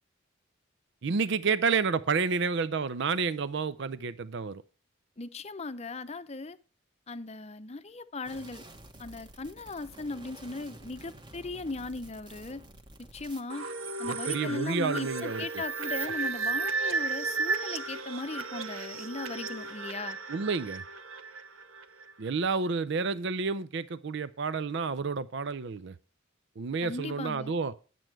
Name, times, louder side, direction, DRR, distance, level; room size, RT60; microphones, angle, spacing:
voice 1, 1.0-4.6 14.1-15.4 20.3-20.8 22.2-25.9 26.6-27.7, right 5 dB, 60° right, 0.5 m, -30 dB
voice 2, 5.2-6.6 7.1-8.6 9.0-12.6 13.0-13.7 14.0-20.2 26.8-27.5, left 3 dB, 30° left, 0.7 m, -38 dB
sound 1, 8.2-13.4, right 1 dB, 20° right, 1.2 m, -50 dB
sound 2, 13.5-22.1, right 4 dB, 80° right, 1.0 m, -34 dB
11.0 x 7.7 x 4.6 m
head